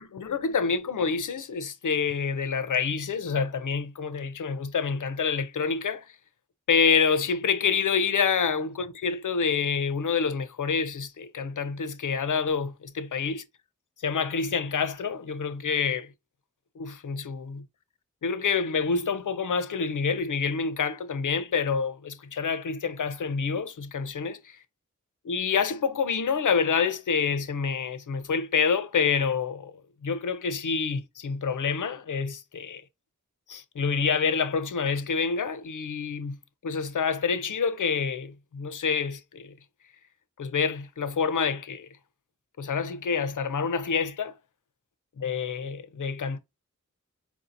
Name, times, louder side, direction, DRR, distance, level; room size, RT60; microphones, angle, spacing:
voice 1, 0.0-6.2 6.7-13.4 14.0-16.1 16.8-17.6 18.2-24.6 25.2-32.8 33.5-36.4 36.6-39.5 40.4-41.9 42.6-44.4 45.2-46.4, left 5 dB, 90° left, 0.6 m, -27 dB
4.6 x 2.7 x 2.6 m
wide cardioid pair, 75°, 30 cm